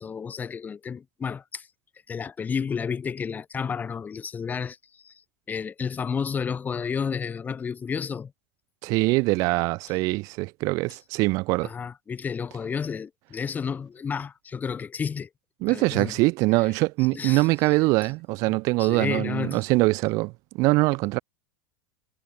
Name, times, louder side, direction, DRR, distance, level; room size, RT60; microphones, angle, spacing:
voice 1, 0.0-1.7 2.1-5.2 5.5-8.3 11.6-15.3 15.7-16.2 17.1-17.8 18.8-19.6, left 6 dB, 20° left, 0.9 m, -31 dB
voice 2, 8.8-11.7 15.6-21.2, right 23 dB, 45° right, 0.4 m, -23 dB
figure-of-eight pair, 80°, 8 cm